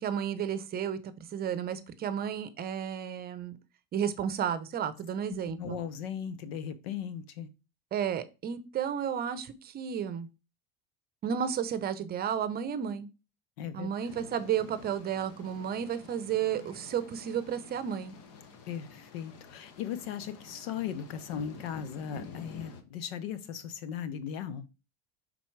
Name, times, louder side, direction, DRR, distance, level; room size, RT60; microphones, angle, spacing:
voice 1, 0.0-3.6 3.9-5.8 7.9-10.3 11.2-13.1 13.7-18.1, right 8 dB, 35° right, 0.7 m, -32 dB
voice 2, 5.3-7.5 13.6-13.9 18.7-24.7, left 8 dB, 90° left, 1.0 m, -38 dB
sound 1, 14.0-22.8, left 4 dB, 55° left, 1.2 m, -49 dB
5.8 x 4.0 x 4.6 m
supercardioid pair, 130°, 29 cm